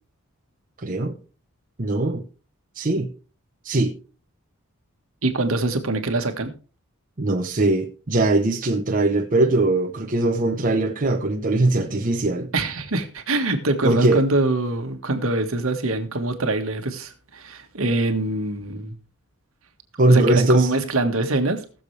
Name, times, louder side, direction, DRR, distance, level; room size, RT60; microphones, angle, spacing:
voice 1, 0.8-1.1 1.8-2.2 2.8-3.1 3.6-3.9 7.2-12.5 13.8-14.2 20.0-20.7, right 2 dB, 40° right, 1.0 m, -20 dB
voice 2, 5.2-6.5 12.5-18.9 20.1-21.6, right 2 dB, 70° right, 1.7 m, -24 dB
19.5 x 7.1 x 3.3 m
head